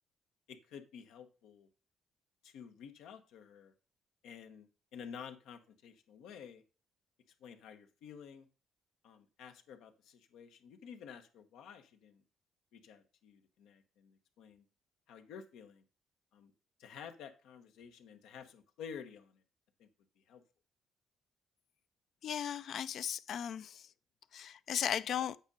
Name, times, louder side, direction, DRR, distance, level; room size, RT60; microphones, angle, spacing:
voice 1, 0.5-1.7 2.4-3.7 4.2-6.6 7.4-8.5 9.0-12.2 12.7-14.6 15.1-15.8 16.3-16.5 16.8-19.4 19.8-19.9 20.3-20.4, left 7 dB, 90° left, 1.1 m, -51 dB
voice 2, 22.2-23.9 24.3-25.4, left 9 dB, 65° left, 0.4 m, -36 dB
8.1 x 5.1 x 5.2 m
cardioid pair, 90°, 0 cm